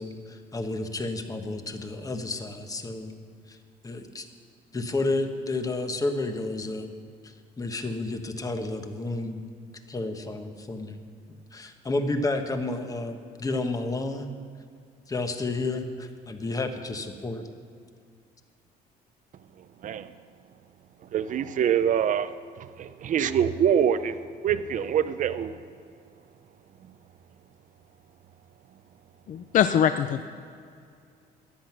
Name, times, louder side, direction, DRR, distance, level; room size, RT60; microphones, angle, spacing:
voice 1, 0.0-3.1 3.5-3.6 3.8-4.3 4.7-6.9 7.2-9.4 9.9-11.0 11.5-14.3 15.1-17.5, left 2 dB, 20° left, 1.2 m, -31 dB
voice 2, 21.1-25.6, right 8 dB, 50° right, 0.7 m, -25 dB
voice 3, 29.3-30.2, left 9 dB, 50° left, 0.5 m, -22 dB
14.0 x 10.5 x 6.0 m
cardioid pair, 110°, 17 cm